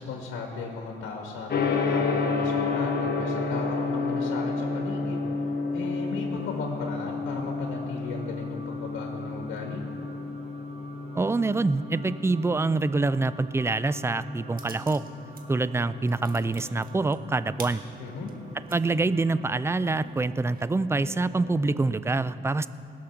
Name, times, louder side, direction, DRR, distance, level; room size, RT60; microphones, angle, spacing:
voice 1, 0.0-5.2 5.7-9.8 18.0-18.3, left 4 dB, 85° left, 1 dB, 1.5 m, -36 dB
Gong, 1.5-20.5, left 4 dB, 55° left, 1.5 m, -32 dB
sound 1, 6.3-22.0, right 2 dB, 30° right, 1.5 m, -48 dB
voice 2, 11.1-15.0 15.5-17.8 18.7-22.7, right 3 dB, 15° right, 15 dB, 0.4 m, -26 dB
sound 2, 14.6-15.4 15.8-18.8 19.3-19.4 19.8-20.7, right 5 dB, 45° right, 1.5 m, -46 dB
19.5 x 6.6 x 5.8 m, 3.0 s
cardioid pair, 90°, 20 cm